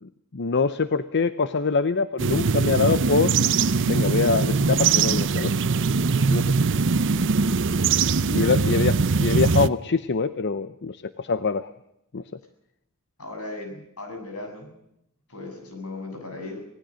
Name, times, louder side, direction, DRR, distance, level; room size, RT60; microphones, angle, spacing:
voice 1, 0.0-3.4 3.9-5.5 6.3-6.5 8.3-11.7 12.1-12.2, left 4 dB, 50° left, 13 dB, 0.7 m, -24 dB
sound 1, 2.2-9.7, right 4 dB, 60° right, 0.7 m, -21 dB
voice 2, 13.2-14.7 15.3-16.7, left 2 dB, 80° left, 4 dB, 7.4 m, -37 dB
26.0 x 19.0 x 6.4 m, 0.80 s
head